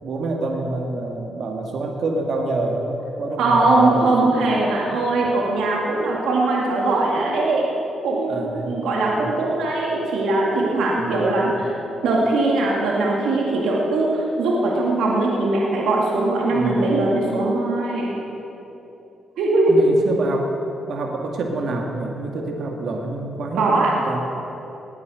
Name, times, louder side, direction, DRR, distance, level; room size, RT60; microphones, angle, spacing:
voice 1, 0.0-4.1 8.3-9.3 11.0-11.7 16.5-16.9 19.7-20.5 20.9-24.2, right 2 dB, 65° right, 1 dB, 1.9 m, -27 dB
voice 2, 3.4-7.6 8.0-11.5 12.0-18.1 19.4-19.8 23.6-23.9, right 2 dB, 85° right, -3 dB, 2.2 m, -20 dB
20.0 x 8.5 x 6.4 m, 3.0 s
cardioid pair, 85°, 0 cm